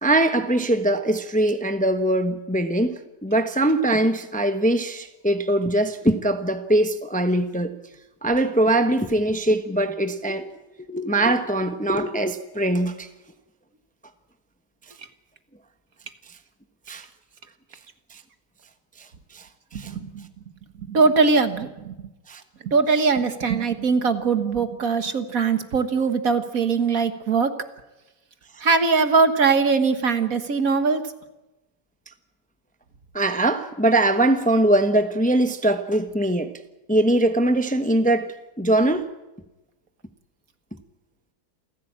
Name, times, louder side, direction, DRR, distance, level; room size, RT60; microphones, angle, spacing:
voice 1, 0.0-2.9 3.2-7.7 8.2-10.6 10.9-13.1 16.9-17.0 19.3-19.4 19.7-19.9 22.3-22.4 33.1-36.5 36.9-39.1, right 1 dB, 5° left, 1.0 m, -22 dB
voice 2, 19.7-20.3 20.8-22.1 22.6-27.5 28.6-31.0, right 4 dB, 60° right, 1.9 m, -21 dB
28.0 x 15.5 x 8.7 m
omnidirectional pair, 1.7 m